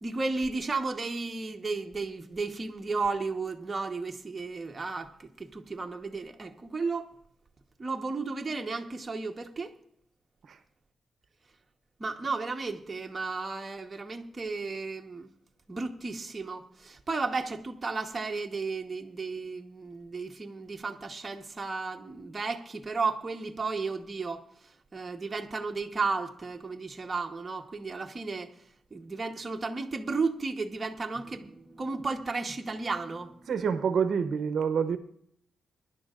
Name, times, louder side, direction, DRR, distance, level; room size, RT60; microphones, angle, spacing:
voice 1, 0.0-7.1 7.8-9.7 12.0-15.3 15.7-24.5 24.9-28.5 28.9-33.4, right 4 dB, 20° right, 1.1 m, -33 dB
voice 2, 33.5-35.0, right 6 dB, 55° right, 0.8 m, -27 dB
24.0 x 11.0 x 2.5 m
wide cardioid pair, 150°, 0 cm